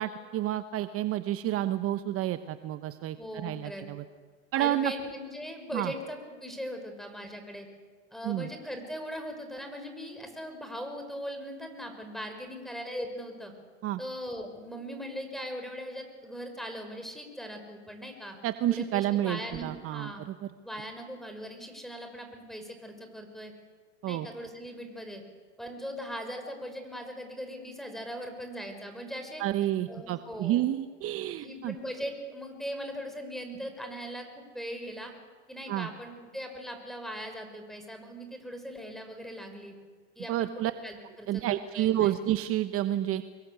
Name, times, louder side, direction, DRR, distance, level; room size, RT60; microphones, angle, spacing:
voice 1, 0.0-4.0 4.5-4.9 5.7-5.9 8.2-8.5 13.8-14.0 18.4-20.3 24.0-24.3 29.4-31.7 35.7-35.9 40.3-40.7 41.3-43.2, right 13 dB, 40° right, 11 dB, 1.1 m, -29 dB
voice 2, 3.2-3.8 4.5-7.7 8.1-13.5 14.0-18.4 18.7-20.2 20.6-23.5 24.0-25.2 25.6-29.4 29.9-30.6 31.4-35.1 35.5-39.7 40.2-40.5 40.8-42.2, equal, ahead, 5 dB, 5.9 m, -40 dB
25.0 x 22.5 x 8.4 m, 1.5 s
hypercardioid pair, 95°, 35 cm